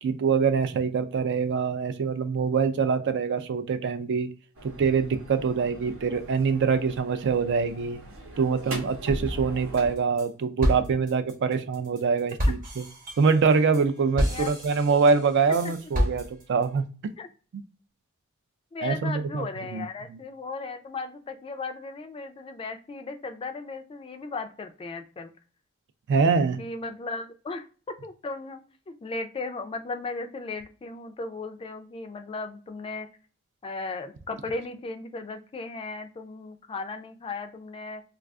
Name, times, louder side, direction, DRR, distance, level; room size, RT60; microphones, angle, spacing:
voice 1, 0.0-4.3 4.8-8.0 8.4-12.8 13.2-16.8 17.5-17.6 18.8-19.5 19.7-19.9 20.1-20.2 26.1-26.6, right 5 dB, 60° right, 10 dB, 0.3 m, -24 dB
sound 1, 4.5-9.9, right 1 dB, 75° right, 0.8 m, -39 dB
sound 2, 9.7-10.3 10.6-16.7, equal, 45° right, 0.9 m, -30 dB
voice 2, 18.7-25.3 26.6-28.6 28.9-33.1 33.6-38.0, left 3 dB, 25° left, 7 dB, 0.3 m, -36 dB
2.3 x 2.3 x 3.4 m, 0.38 s
head